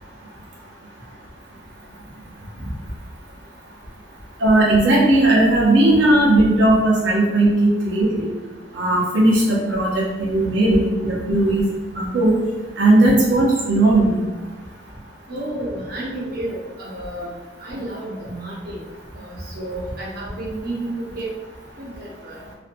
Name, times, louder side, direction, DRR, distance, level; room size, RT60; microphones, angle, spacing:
voice 1, 4.4-8.3 8.7-11.6 12.0-12.3 12.8-14.1, right 1 dB, 90° right, -5 dB, 0.7 m, -17 dB
voice 2, 15.3-17.3 17.6-18.8 19.2-21.3 21.8-22.4, right 1 dB, 55° right, -6 dB, 0.6 m, -31 dB
2.5 x 2.1 x 2.5 m, 1.2 s
head